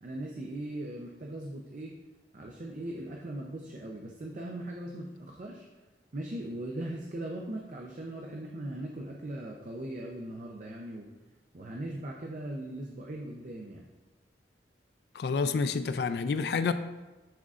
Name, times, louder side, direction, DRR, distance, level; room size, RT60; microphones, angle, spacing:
voice 1, 0.0-2.0 2.3-5.7 6.1-11.1 11.5-13.9, right 1 dB, 45° right, 0 dB, 0.5 m, -39 dB
voice 2, 15.2-16.7, left 5 dB, 65° left, 11 dB, 0.3 m, -28 dB
10.5 x 3.7 x 2.4 m, 1.2 s
head